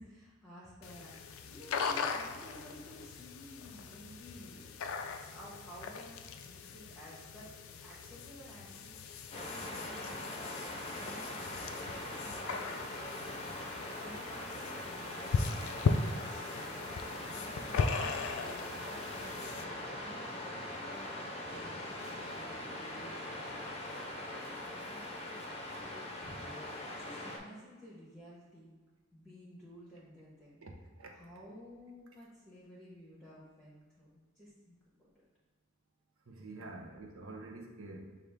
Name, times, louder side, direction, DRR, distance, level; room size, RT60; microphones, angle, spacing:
voice 1, 0.0-4.7 5.3-10.6 10.9-11.5 11.8-26.5 26.8-28.7 29.1-30.6 31.1-34.8 36.6-36.9, equal, 5° left, -8 dB, 0.9 m, -54 dB
sound 1, 0.8-19.6, left 4 dB, 75° left, 0.3 m, -38 dB
Waves surf, 9.3-27.4, left 1 dB, 30° left, 0.6 m, -42 dB
voice 2, 30.6-31.1 36.3-38.2, right 2 dB, 75° right, 1 dB, 0.7 m, -47 dB
5.9 x 2.4 x 3.4 m, 1.4 s
head